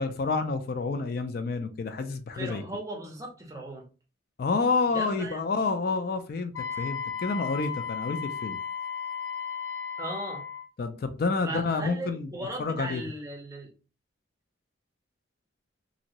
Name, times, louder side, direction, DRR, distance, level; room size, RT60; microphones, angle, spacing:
voice 1, 0.0-2.6 4.4-8.6 10.8-12.3 12.6-13.0, left 4 dB, 50° left, 0.3 m, -29 dB
voice 2, 2.3-3.8 4.9-5.4 10.0-10.4 11.4-13.7, right 1 dB, 15° right, 0.7 m, -37 dB
Wind instrument woodwind instrument, 6.5-10.7, left 7 dB, 85° left, 1.1 m, -35 dB
2.9 x 2.6 x 2.9 m
head